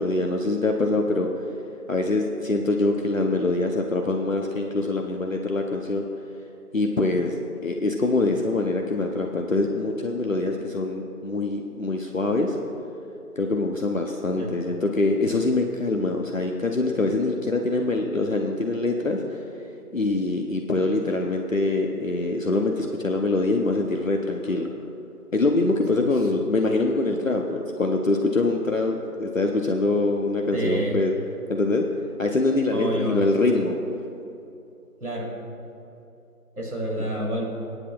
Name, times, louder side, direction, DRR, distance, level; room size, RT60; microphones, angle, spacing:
voice 1, 0.0-1.4 1.9-6.1 6.7-12.6 13.4-19.4 19.9-24.7 25.3-31.1 31.5-31.8 32.2-33.8 37.0-37.1, left 2 dB, 55° left, 2 dB, 0.8 m, -24 dB
voice 2, 30.5-31.0 32.7-33.2 35.0-35.3 36.6-37.4, right 1 dB, 65° right, -2 dB, 2.4 m, -28 dB
19.5 x 9.8 x 2.4 m, 2.8 s
figure-of-eight pair, 165°, 46 cm